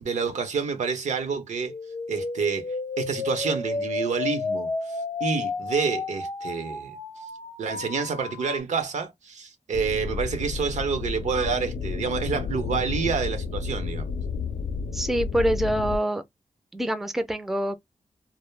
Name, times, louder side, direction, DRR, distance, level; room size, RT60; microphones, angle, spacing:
voice 1, 0.0-1.7 2.1-6.9 7.6-14.2, right 5 dB, 85° right, 0.7 m, -28 dB
sound 1, 1.6-8.6, left 3 dB, 40° left, 0.6 m, -32 dB
sound 2, 9.7-16.0, left 5 dB, 75° left, 0.4 m, -31 dB
voice 2, 14.9-16.2 16.7-17.8, right 1 dB, ahead, 0.4 m, -25 dB
2.2 x 2.0 x 3.2 m
wide cardioid pair, 100°, 12 cm